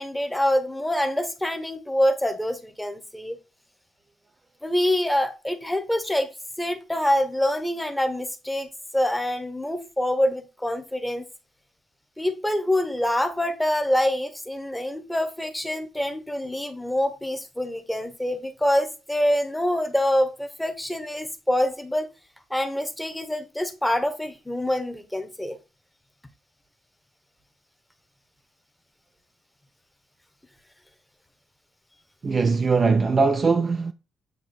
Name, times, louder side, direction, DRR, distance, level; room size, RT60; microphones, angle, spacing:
voice 1, 0.0-3.4 4.6-6.3 6.6-8.7 8.9-11.2 12.2-22.1 22.5-25.6, left 1 dB, 5° left, 1.0 m, -25 dB
voice 2, 32.2-33.9, right 4 dB, 25° right, 0.4 m, -21 dB
8.4 x 3.0 x 4.3 m
cardioid pair, 165°, 0 cm